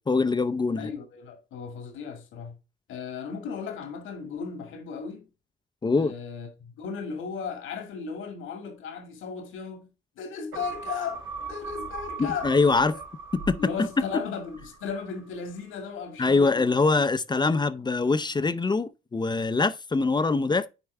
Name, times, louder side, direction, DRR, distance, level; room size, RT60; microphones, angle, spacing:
voice 1, 0.0-0.9 5.8-6.1 12.2-12.9 13.3-13.9 16.2-20.7, left 3 dB, 20° left, 0.6 m, -23 dB
voice 2, 0.8-2.5 2.9-5.3 6.0-9.9 10.2-13.0 13.6-16.9, left 6 dB, 85° left, 2.1 m, -36 dB
sound 1, 10.5-15.2 15.6-15.7, right 4 dB, 90° right, 3.1 m, -39 dB
9.6 x 4.5 x 3.3 m
cardioid pair, 90°, 20 cm